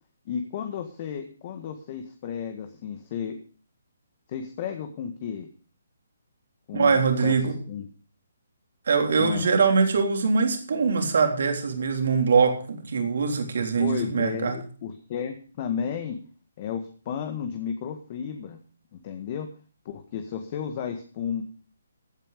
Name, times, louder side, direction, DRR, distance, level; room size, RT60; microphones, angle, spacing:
voice 1, 0.2-3.3 4.3-5.5 6.7-7.9 9.2-9.5 13.8-16.2 16.6-18.6 18.9-19.5 19.8-21.4, left 7 dB, 40° left, 7 dB, 1.6 m, -33 dB
voice 2, 6.7-7.6 8.9-14.6, right 5 dB, 60° right, 4 dB, 3.6 m, -23 dB
16.0 x 9.3 x 5.1 m, 0.41 s
figure-of-eight pair, 140°, 0 cm